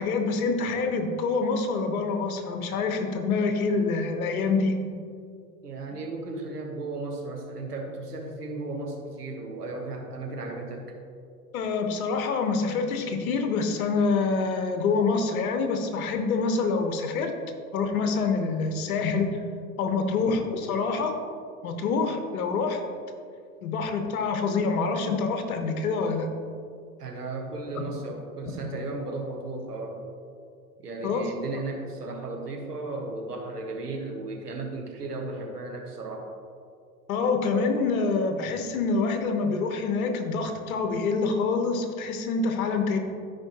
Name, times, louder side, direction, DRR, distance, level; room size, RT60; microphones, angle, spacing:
voice 1, 0.0-4.9 11.5-17.3 17.7-19.4 19.8-21.1 21.6-22.8 23.6-26.3 31.0-31.3 37.1-43.0, left 4 dB, 65° left, 6 dB, 1.2 m, -26 dB
voice 2, 5.6-10.9 27.0-30.0 30.8-36.2, right 2 dB, 90° right, 1 dB, 1.5 m, -35 dB
13.5 x 5.2 x 3.0 m, 2.3 s
figure-of-eight pair, 90°, 45 cm